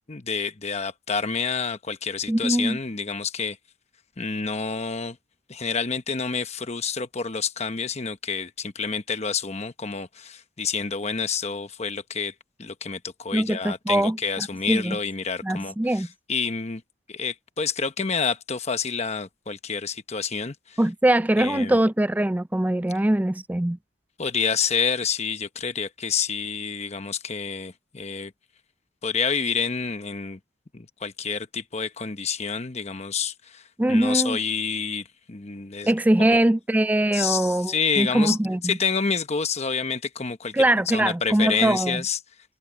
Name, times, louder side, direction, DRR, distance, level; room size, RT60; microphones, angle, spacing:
voice 1, 0.1-3.6 4.2-5.2 5.5-12.3 12.6-16.8 17.1-20.8 21.4-21.8 24.2-28.3 29.0-30.4 30.7-33.6 33.9-35.9 36.2-36.4 37.1-38.4 38.6-42.2, left 5 dB, 35° left, 1.0 m, -28 dB
voice 2, 2.3-2.8 13.3-15.0 15.4-16.1 20.8-23.8 33.8-34.4 35.8-38.8 40.5-42.0, right 1 dB, 10° right, 0.3 m, -22 dB
head